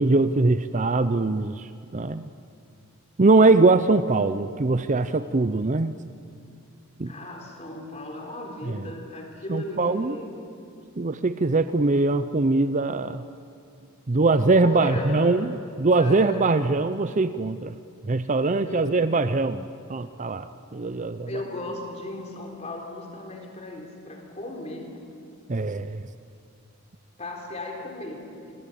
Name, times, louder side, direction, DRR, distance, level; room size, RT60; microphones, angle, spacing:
voice 1, 0.0-2.3 3.2-5.9 7.0-7.1 8.7-8.8 9.5-10.2 11.0-13.2 14.1-15.5 15.8-17.7 18.0-21.3 25.5-26.0, right 3 dB, 35° right, 12 dB, 0.6 m, -22 dB
voice 2, 7.1-10.5 14.6-15.5 16.0-16.6 18.7-19.1 21.3-24.9 27.2-28.5, left 1 dB, 30° left, 2 dB, 3.8 m, -36 dB
28.0 x 21.0 x 8.6 m, 2.5 s
head